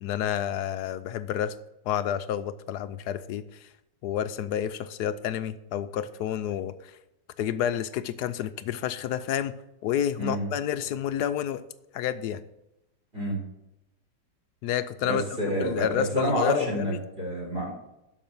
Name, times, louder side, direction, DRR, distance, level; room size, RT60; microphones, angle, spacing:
voice 1, 0.0-1.5 1.8-3.7 4.0-6.9 7.4-9.6 9.8-11.6 11.9-12.4 14.6-15.2 15.6-17.0, left 10 dB, 70° left, 12 dB, 1.0 m, -29 dB
voice 2, 15.0-17.7, equal, 30° right, -2 dB, 4.5 m, -28 dB
12.0 x 5.5 x 5.9 m, 0.89 s
omnidirectional pair, 2.0 m